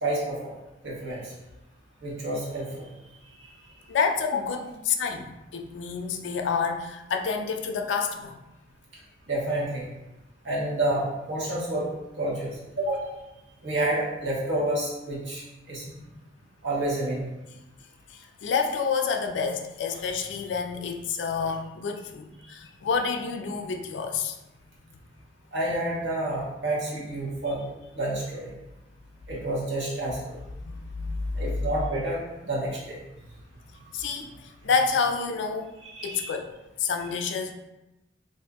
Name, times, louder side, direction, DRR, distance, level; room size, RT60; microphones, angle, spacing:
voice 1, 0.0-0.6 0.8-1.3 2.0-2.7 3.4-3.5 9.3-9.8 10.4-11.9 12.1-13.1 13.6-15.8 16.6-17.3 25.5-27.6 27.9-28.5 29.3-30.4 31.3-33.0 35.8-36.3, right 1 dB, 70° right, -6 dB, 1.1 m, -29 dB
voice 2, 3.9-8.4 18.1-24.4 30.6-31.4 33.9-34.3 34.6-35.7 36.0-36.5 36.8-37.5, left 5 dB, 70° left, 5 dB, 0.4 m, -28 dB
2.6 x 2.5 x 3.5 m, 0.97 s
head